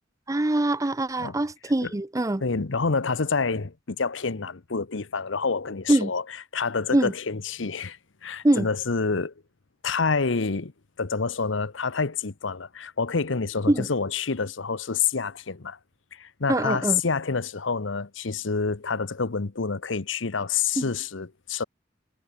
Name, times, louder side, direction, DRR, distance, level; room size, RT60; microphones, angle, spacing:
voice 1, 0.3-2.4 5.9-6.1 6.9-7.1 8.4-8.7 13.7-13.9 16.5-17.0 20.8-20.9, right 1 dB, 15° right, 0.6 m, -23 dB
voice 2, 2.4-6.2 6.5-9.3 9.8-10.7 11.0-15.8 16.1-21.6, left 5 dB, 80° left, 1.0 m, -28 dB
head